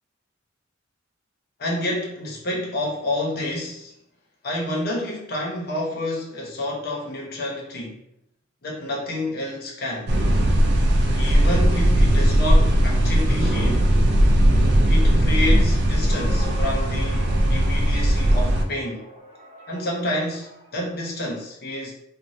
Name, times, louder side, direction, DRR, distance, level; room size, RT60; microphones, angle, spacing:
voice 1, 1.6-3.9 4.4-8.0 8.6-10.2 11.1-13.9 14.9-19.0 19.7-21.9, left 1 dB, 50° left, -2 dB, 0.7 m, -29 dB
sound 1, 10.1-18.6, right 1 dB, 55° right, 0.4 m, -18 dB
sound 2, 16.1-20.9, left 1 dB, 40° right, 0.9 m, -41 dB
3.0 x 2.1 x 2.6 m, 0.74 s
head